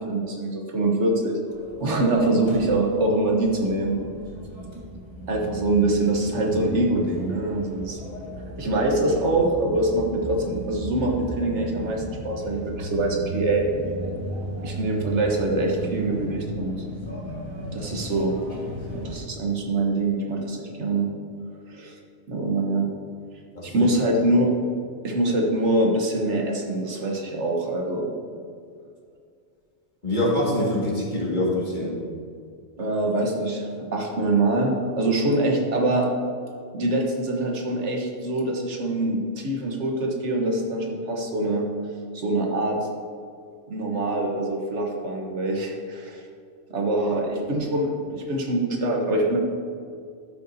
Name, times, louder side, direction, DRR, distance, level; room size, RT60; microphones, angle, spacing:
voice 1, 0.0-1.4 1.8-4.0 5.3-8.0 8.6-13.7 14.6-16.7 17.7-18.4 18.9-21.1 21.7-21.9 22.3-22.9 23.6-24.5 25.0-28.1 32.8-36.1 36.7-41.7 42.1-42.8 43.7-46.2 46.7-49.4, right 2 dB, 75° right, 0 dB, 1.4 m, -24 dB
sound 1, 1.5-19.2, right 1 dB, 25° right, 1.6 m, -35 dB
voice 2, 23.5-23.9 30.0-31.9, left 1 dB, 45° left, -6 dB, 2.0 m, -24 dB
12.0 x 6.6 x 2.7 m, 2.2 s
omnidirectional pair, 1.2 m